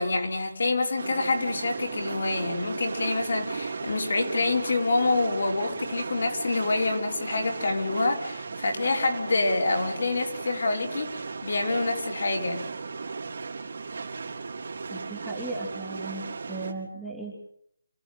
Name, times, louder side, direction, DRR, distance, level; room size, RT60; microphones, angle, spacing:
voice 1, 0.0-12.6, left 3 dB, 55° left, 2 dB, 4.4 m, -27 dB
sound 1, 1.0-16.7, right 4 dB, 50° right, 3.7 m, -36 dB
voice 2, 14.9-17.3, right 2 dB, ahead, -6 dB, 2.7 m, -36 dB
27.5 x 15.0 x 9.4 m, 0.71 s
hypercardioid pair, 175°, 0 cm